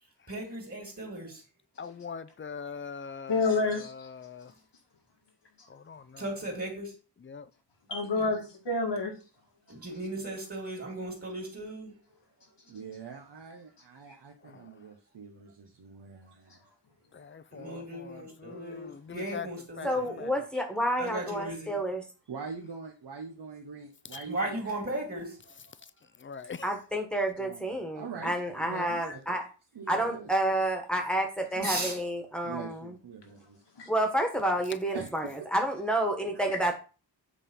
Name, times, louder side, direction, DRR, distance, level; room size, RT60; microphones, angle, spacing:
voice 1, 0.3-1.4 6.2-6.9 9.7-11.9 17.5-20.3 21.0-21.7 24.2-25.4 31.5-32.0, right 1 dB, 35° right, 2.6 m, -36 dB
voice 2, 1.8-4.5 5.7-6.2 7.2-7.5 14.4-14.7 17.1-19.5 19.8-19.9 20.2-20.3 26.2-26.7, left 6 dB, 30° left, 0.5 m, -42 dB
voice 3, 3.3-4.1 7.9-9.1 24.1-24.5 33.8-33.9, left 3 dB, 85° left, 2.1 m, -29 dB
voice 4, 12.7-16.6 22.3-24.8 27.4-29.4 29.7-30.3 32.4-33.6 34.9-35.1 36.3-36.4, right 5 dB, 75° right, 1.1 m, -43 dB
voice 5, 19.8-22.0 26.6-29.4 29.9-32.9 33.9-36.7, right 1 dB, ahead, 1.4 m, -29 dB
8.2 x 3.7 x 5.5 m
wide cardioid pair, 110°, 41 cm